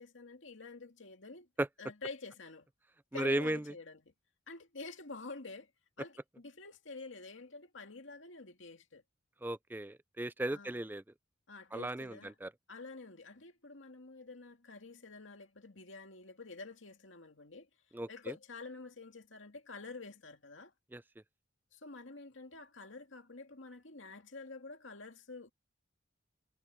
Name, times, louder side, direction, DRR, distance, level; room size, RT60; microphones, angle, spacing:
voice 1, 0.0-1.5 1.8-2.7 3.1-4.1 4.5-5.7 6.0-9.0 10.5-10.8 11.5-12.3 12.7-17.7 18.1-20.7 21.7-25.5, left 3 dB, 80° left, 2.3 m, -48 dB
voice 2, 3.1-3.6 9.4-11.0 11.7-12.5 17.9-18.3 20.9-21.0, right 1 dB, 10° right, 0.4 m, -35 dB
head